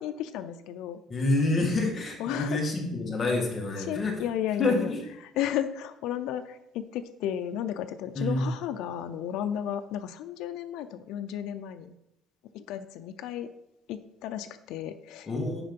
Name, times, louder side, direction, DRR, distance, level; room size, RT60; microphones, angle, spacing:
voice 1, 0.0-1.0 2.2-2.7 3.8-4.9 5.2-11.9 12.5-13.5 13.9-15.3, left 10 dB, 75° left, 9 dB, 0.5 m, -33 dB
voice 2, 1.1-4.1 4.6-5.0 8.1-8.4 15.3-15.6, left 2 dB, 25° left, 0 dB, 1.7 m, -27 dB
9.9 x 3.7 x 5.3 m, 0.86 s
cardioid pair, 155°, 0 cm